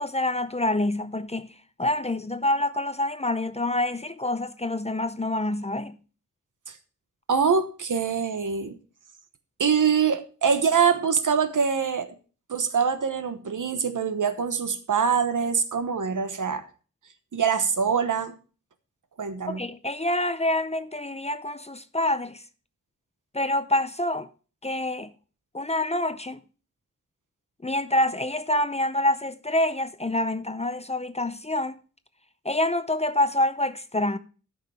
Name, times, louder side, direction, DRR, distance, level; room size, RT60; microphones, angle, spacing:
voice 1, 0.0-1.5 1.8-5.9 19.5-22.4 23.3-24.3 24.6-25.1 25.5-26.4 27.6-31.8 32.4-34.2, left 1 dB, 20° left, 0.6 m, -26 dB
voice 2, 7.3-8.8 9.6-12.1 12.5-16.7 17.3-18.3 19.2-19.6, right 6 dB, 65° right, 1.1 m, -24 dB
12.5 x 5.7 x 4.3 m
wide cardioid pair, 95°, 33 cm